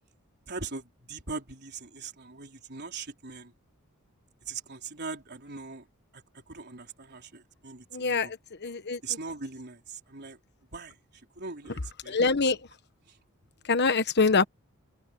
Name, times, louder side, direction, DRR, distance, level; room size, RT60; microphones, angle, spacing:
voice 1, 0.5-3.5 4.4-5.9 6.1-6.2 6.5-8.3 9.0-10.4 10.7-10.9 11.4-12.2 13.1-13.2, right 4 dB, 50° right, 4.1 m, -40 dB
voice 2, 7.9-9.0 12.1-12.6 13.7-14.5, left 4 dB, 50° left, 1.2 m, -25 dB
open air
head